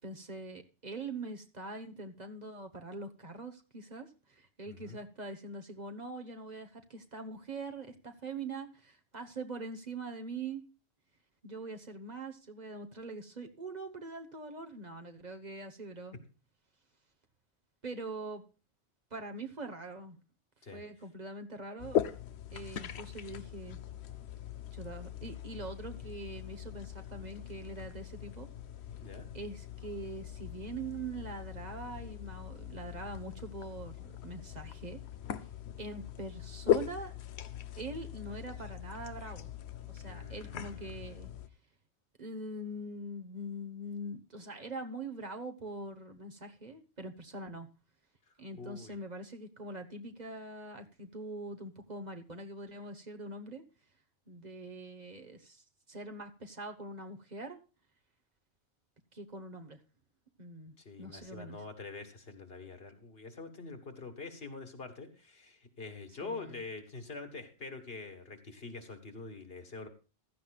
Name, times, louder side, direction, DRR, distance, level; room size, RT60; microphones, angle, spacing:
voice 1, 0.0-10.6 11.4-16.2 17.8-18.4 19.1-20.2 20.7-22.0 22.5-23.8 24.7-28.5 29.3-35.0 35.8-37.1 37.8-39.5 39.9-41.3 42.2-47.7 48.4-53.6 54.3-57.6 59.1-59.8 60.4-61.6 66.2-66.6, right 2 dB, 40° right, 5 dB, 1.3 m, -43 dB
voice 2, 4.7-5.0 20.6-20.8 29.0-29.3 40.1-41.1 48.5-49.0 60.9-69.9, left 3 dB, 65° left, 6 dB, 1.9 m, -45 dB
sound 1, 21.8-41.5, left 10 dB, 85° left, 1.0 m, -39 dB
15.5 x 12.5 x 2.3 m, 0.33 s
omnidirectional pair, 1.1 m